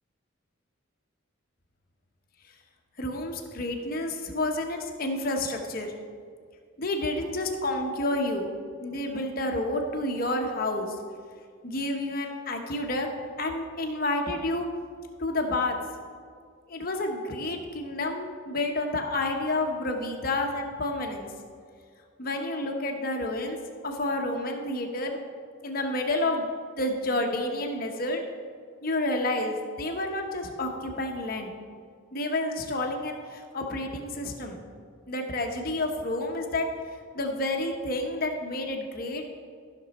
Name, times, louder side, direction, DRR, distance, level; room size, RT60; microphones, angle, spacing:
voice 1, 3.0-5.9 6.8-8.5 8.8-11.0 11.6-13.1 13.4-14.7 15.2-15.8 16.7-21.3 22.2-23.6 23.8-25.2 25.6-26.5 26.8-28.2 28.8-31.6 32.1-34.6 35.1-36.7 37.1-39.2, left 2 dB, 45° left, 3 dB, 1.0 m, -29 dB
14.0 x 6.1 x 4.2 m, 2.1 s
head